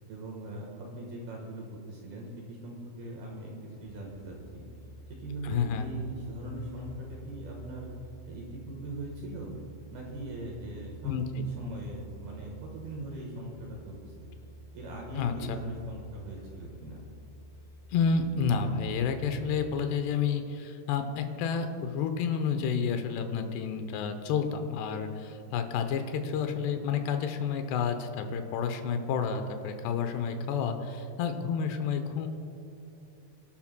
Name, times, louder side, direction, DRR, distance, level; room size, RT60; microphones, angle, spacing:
voice 1, 0.1-4.6 5.1-7.9 8.3-9.5 9.9-11.2 11.6-14.3 14.7-17.0, right 1 dB, 65° right, -1 dB, 2.8 m, -41 dB
sound 1, 3.8-19.6, right 2 dB, 45° left, 3.4 m, -49 dB
voice 2, 5.4-5.9 11.0-11.5 15.2-15.6 17.9-32.3, left 6 dB, 80° left, 6 dB, 2.5 m, -30 dB
27.0 x 12.0 x 2.2 m, 2.8 s
omnidirectional pair, 5.7 m